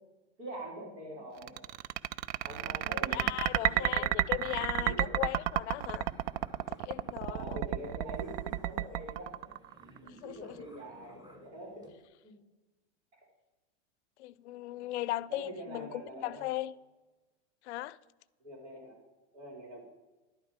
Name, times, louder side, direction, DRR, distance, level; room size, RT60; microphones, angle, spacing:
voice 1, 0.4-1.7 2.4-3.3 3.6-5.2 7.3-9.5 10.0-11.9 12.2-12.3 13.1-13.2 15.3-16.5 18.4-19.0 19.3-19.8, right 1 dB, 80° right, 4.6 m, -45 dB
sound 1, 1.4-10.1, right 14 dB, 50° right, 0.4 m, -31 dB
voice 2, 3.1-6.1 6.8-7.6 10.2-10.6 14.2-16.7 17.6-18.0, left 16 dB, 70° left, 0.5 m, -37 dB
sound 2, 5.3-12.0, equal, 10° right, 1.2 m, -57 dB
11.0 x 8.9 x 5.0 m
hypercardioid pair, 120°, 36 cm